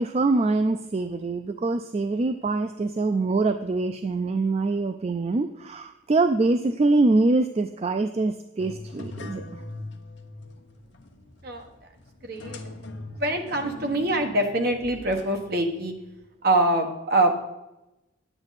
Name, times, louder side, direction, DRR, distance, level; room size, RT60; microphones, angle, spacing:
voice 1, 0.0-9.6, right 3 dB, 30° right, 8 dB, 0.3 m, -24 dB
sound 1, 8.6-16.2, left 2 dB, 65° left, 1.0 m, -42 dB
voice 2, 12.2-15.9 16.4-17.4, right 1 dB, 50° right, 4 dB, 1.4 m, -25 dB
9.5 x 9.0 x 4.1 m, 0.95 s
head